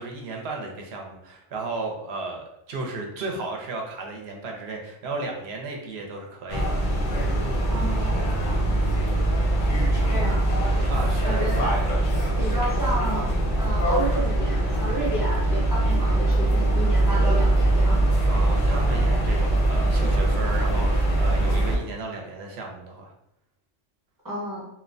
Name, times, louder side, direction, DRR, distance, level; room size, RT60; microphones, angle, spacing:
voice 1, 0.0-6.8 10.9-11.4 18.2-23.1, right 3 dB, 65° right, 1 dB, 0.8 m, -34 dB
sound 1, 6.5-21.8, right 1 dB, 55° left, 0.6 m, -22 dB
voice 2, 7.7-8.3 10.0-10.5 11.2-11.8 12.4-13.3 13.6-18.0 24.2-24.6, right 1 dB, 20° right, -5 dB, 0.6 m, -31 dB
2.8 x 2.1 x 2.5 m, 0.81 s
omnidirectional pair, 1.2 m